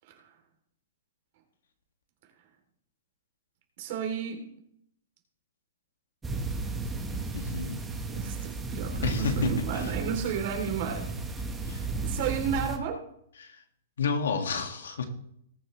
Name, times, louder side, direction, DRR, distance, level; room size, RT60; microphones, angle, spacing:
voice 1, 3.8-4.5 8.1-11.1 11.6-11.8 12.0-13.0, right 7 dB, 45° right, 3 dB, 3.0 m, -32 dB
sound 1, 6.2-12.8, right 3 dB, 10° right, 1.1 m, -33 dB
voice 2, 7.3-7.8 9.0-9.9 11.6-11.9 13.4-13.6 14.0-15.0, left 4 dB, 90° left, 5 dB, 1.9 m, -30 dB
20.0 x 7.0 x 3.2 m, 0.71 s
hypercardioid pair, 160°, 0 cm